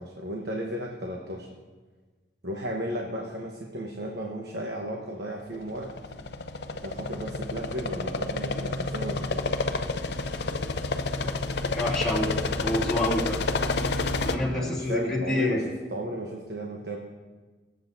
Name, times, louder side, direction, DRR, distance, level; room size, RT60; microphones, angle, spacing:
voice 1, 0.0-1.5 2.4-5.9 6.7-9.7 14.4-15.6 15.9-17.0, equal, 65° right, 0 dB, 1.1 m, -34 dB
sound 1, 5.7-14.4, left 3 dB, 70° left, 0.6 m, -29 dB
voice 2, 11.6-12.3 12.6-13.4 14.2-15.6, left 1 dB, 5° left, -7 dB, 3.1 m, -27 dB
23.5 x 8.2 x 2.7 m, 1.3 s
head